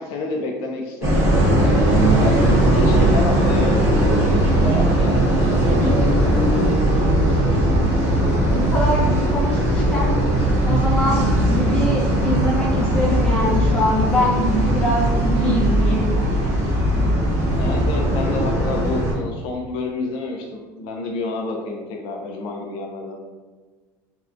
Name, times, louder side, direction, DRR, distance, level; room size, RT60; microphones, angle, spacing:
voice 1, 0.0-2.3 2.7-6.3 17.6-23.2, left 3 dB, 65° left, 1 dB, 0.4 m, -29 dB
sound 1, 1.0-19.1, right 1 dB, 30° right, 0.7 m, -18 dB
voice 2, 8.5-10.1 10.6-16.0, equal, 10° left, -5 dB, 0.6 m, -23 dB
2.6 x 2.1 x 2.4 m, 1.4 s
cardioid pair, 150°, 9 cm